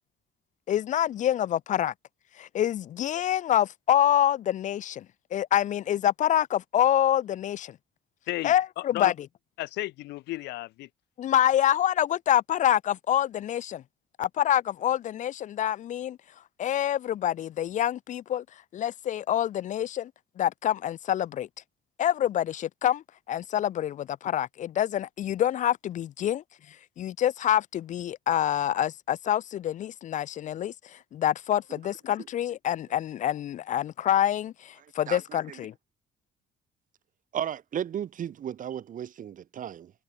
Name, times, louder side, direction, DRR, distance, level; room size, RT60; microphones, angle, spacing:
voice 1, 0.7-1.9 2.4-5.1 5.3-7.8 8.4-9.1 11.2-13.8 14.2-16.2 16.6-18.4 18.7-20.1 20.4-21.5 22.0-26.4 27.0-35.7, left 11 dB, 50° left, 0.5 m, -26 dB
voice 2, 8.3-9.1 9.6-10.9, left 18 dB, 85° left, 4.7 m, -34 dB
voice 3, 37.3-39.9, right 9 dB, 50° right, 4.2 m, -34 dB
cardioid pair, 110°, 17 cm